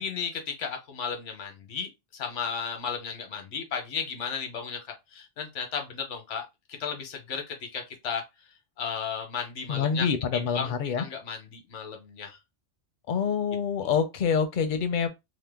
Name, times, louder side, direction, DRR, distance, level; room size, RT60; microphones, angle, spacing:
voice 1, 0.0-8.2 8.8-10.1 10.3-12.4 13.8-13.9, left 6 dB, 90° left, 1.1 m, -34 dB
voice 2, 9.7-11.0 13.1-15.1, left 6 dB, 60° left, 0.5 m, -26 dB
2.9 x 2.1 x 3.3 m
omnidirectional pair, 1.2 m